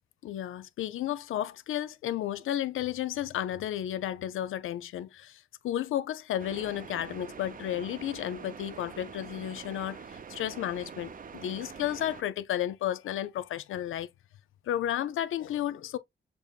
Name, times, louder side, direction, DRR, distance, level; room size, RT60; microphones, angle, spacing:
voice 1, 0.2-14.1 14.7-16.0, left 11 dB, 80° left, 0.4 m, -33 dB
sound 1, 6.4-12.2, right 6 dB, 40° right, 0.5 m, -45 dB
6.7 x 2.7 x 2.4 m
supercardioid pair, 50°, 21 cm